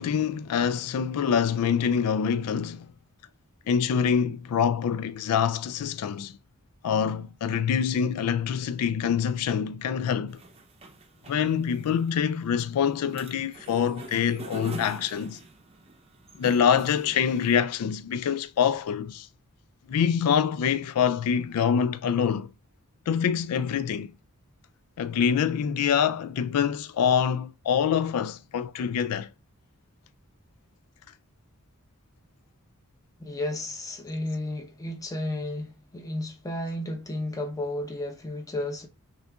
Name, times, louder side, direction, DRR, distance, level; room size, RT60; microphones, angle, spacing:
voice 1, 0.0-2.9 3.7-6.3 6.8-10.4 11.3-15.4 16.4-19.3 19.9-22.5 23.1-24.1 25.0-29.3, left 7 dB, 85° left, 0.3 m, -25 dB
sound 1, 10.3-17.5, right 2 dB, 25° right, 0.6 m, -44 dB
voice 2, 33.2-38.9, left 1 dB, 15° left, 0.7 m, -33 dB
6.1 x 2.5 x 2.3 m
head